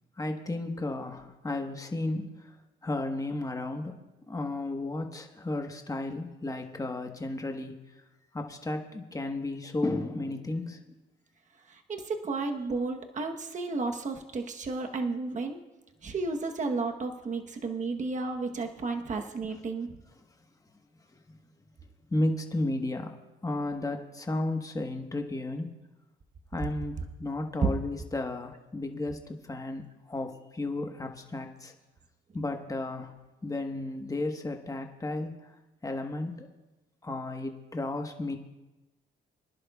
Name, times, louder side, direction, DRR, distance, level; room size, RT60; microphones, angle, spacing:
voice 1, 0.2-2.3 2.8-3.9 4.3-7.7 8.3-10.8 22.1-23.1 23.4-25.7 26.5-31.7 32.3-33.1 33.4-35.5 35.8-36.5 37.0-38.4, left 2 dB, 15° left, 4 dB, 1.3 m, -33 dB
voice 2, 11.7-15.6 16.0-19.9 27.6-27.7, right 3 dB, 40° right, 4 dB, 1.1 m, -32 dB
24.0 x 11.0 x 2.4 m, 1.1 s
cardioid pair, 90°, 20 cm